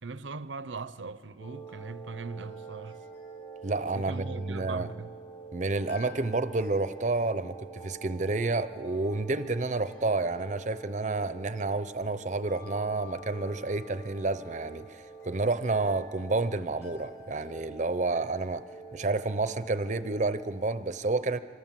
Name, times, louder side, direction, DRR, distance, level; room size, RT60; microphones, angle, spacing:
voice 1, 0.0-3.0 3.9-5.1, right 4 dB, 85° right, 0.7 m, -40 dB
sound 1, 1.4-20.6, right 3 dB, 70° left, 7.0 m, -47 dB
voice 2, 3.6-4.9 5.5-18.6 18.9-21.4, right 3 dB, 40° right, 0.6 m, -30 dB
26.0 x 25.0 x 7.5 m
head